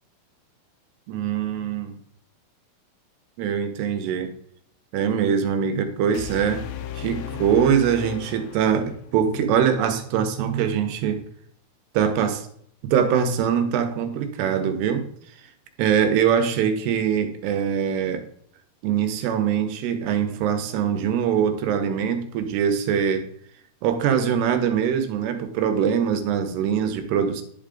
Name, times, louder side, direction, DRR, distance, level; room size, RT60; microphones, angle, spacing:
voice 1, 1.1-2.0 3.4-4.3 4.9-6.7 7.0-11.2 11.9-12.5 12.8-15.1 15.8-18.3 18.8-23.3 23.8-27.4, right 8 dB, 85° right, 8 dB, 2.9 m, -23 dB
sound 1, 6.1-9.2, left 11 dB, 80° left, 2.3 m, -35 dB
11.0 x 4.7 x 3.8 m, 0.64 s
omnidirectional pair, 4.8 m